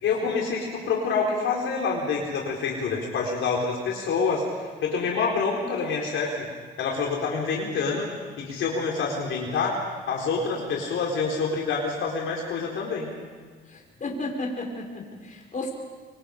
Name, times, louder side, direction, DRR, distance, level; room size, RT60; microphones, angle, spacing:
voice 1, 0.0-4.4 4.8-6.3 6.8-8.1 8.4-9.8 10.1-13.1, left 5 dB, 75° left, -2 dB, 4.1 m, -27 dB
voice 2, 13.7-15.7, left 2 dB, 40° left, 1 dB, 5.5 m, -33 dB
25.5 x 24.0 x 5.2 m, 1.5 s
cardioid pair, 90°, 20 cm